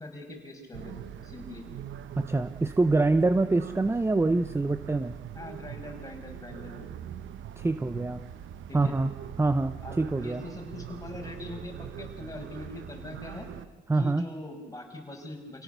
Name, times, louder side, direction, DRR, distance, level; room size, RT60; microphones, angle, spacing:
voice 1, 0.0-1.6 5.3-6.9 8.7-8.9 9.8-13.5 13.9-15.6, left 2 dB, 15° left, 1 dB, 6.1 m, -42 dB
sound 1, 0.7-13.7, right 10 dB, 75° right, 1.0 m, -42 dB
voice 2, 2.2-5.2 7.6-8.3 8.7-9.1 9.4-10.4 13.9-14.3, right 2 dB, 15° right, 11 dB, 0.7 m, -25 dB
28.0 x 17.5 x 6.9 m, 1.3 s
cardioid pair, 90°, 20 cm